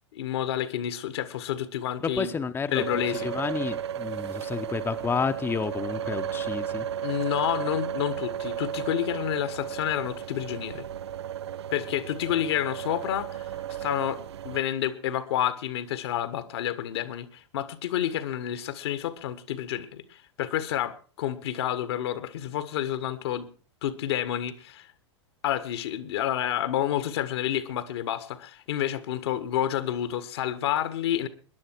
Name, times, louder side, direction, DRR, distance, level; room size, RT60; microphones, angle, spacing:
voice 1, 0.1-2.3 2.7-3.3 7.0-10.9 11.7-13.5 13.8-14.2 14.4-23.5 23.8-24.9 25.4-31.3, left 11 dB, 60° left, 13 dB, 1.5 m, -29 dB
voice 2, 2.0-6.9, left 5 dB, 15° left, 8 dB, 0.9 m, -30 dB
sound 1, 2.7-14.6, right 9 dB, 65° right, 0.6 m, -34 dB
21.5 x 10.5 x 4.6 m, 0.41 s
figure-of-eight pair, 95°, 15 cm